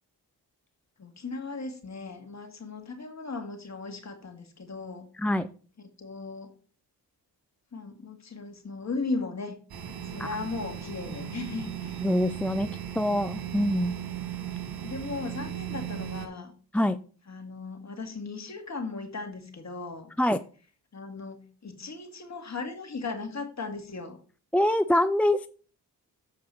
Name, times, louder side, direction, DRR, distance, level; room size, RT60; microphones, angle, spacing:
voice 1, 1.0-5.1 5.8-6.5 7.7-9.6 10.1-12.1 14.8-16.5 17.3-20.1 20.9-24.2, left 3 dB, 40° left, 5 dB, 2.2 m, -37 dB
sound 1, 9.7-16.3, right 10 dB, 60° right, 1.6 m, -37 dB
voice 2, 12.0-12.7 13.0-14.0 16.7-17.0 20.2-20.4 24.5-25.5, left 1 dB, 5° left, 13 dB, 0.3 m, -24 dB
7.8 x 4.7 x 5.6 m, 0.40 s
supercardioid pair, 55°, 42 cm